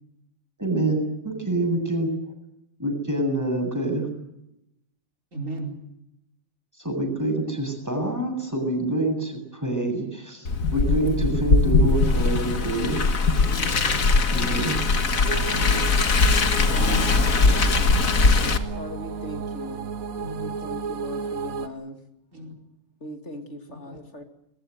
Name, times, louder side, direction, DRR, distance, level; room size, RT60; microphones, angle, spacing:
voice 1, 0.6-2.2 2.8-4.1 6.7-13.0 14.3-14.8, right 1 dB, 10° right, 3 dB, 7.9 m, -26 dB
voice 2, 5.3-5.8 13.4-13.7 14.1-14.5 15.5-15.9 16.7-17.1 20.2-20.6 22.3-22.5 23.7-24.0, right 1 dB, 70° right, 1 dB, 5.2 m, -36 dB
Car, 10.5-18.6, left 3 dB, 85° left, 2.1 m, -21 dB
sound 1, 15.3-21.7, right 5 dB, 85° right, 1.6 m, -33 dB
voice 3, 18.7-19.9 20.4-22.0 23.0-24.2, left 1 dB, 55° left, 4 dB, 2.9 m, -39 dB
22.0 x 20.0 x 9.3 m, 0.83 s
omnidirectional pair, 1.4 m